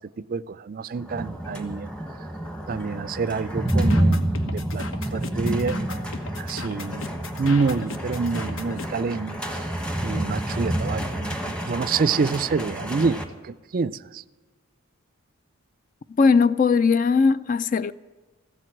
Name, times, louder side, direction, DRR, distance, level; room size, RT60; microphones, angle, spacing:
voice 1, 0.2-1.9 2.7-4.8 5.1-5.8 6.4-7.0 7.4-9.6 10.0-14.2, right 4 dB, 40° right, 0.4 m, -27 dB
sound 1, 0.9-13.2, right 1 dB, 5° left, 1.2 m, -28 dB
sound 2, 3.7-8.9, left 3 dB, 70° left, 1.2 m, -37 dB
voice 2, 16.2-17.9, left 5 dB, 40° left, 0.3 m, -19 dB
15.0 x 7.6 x 9.9 m
head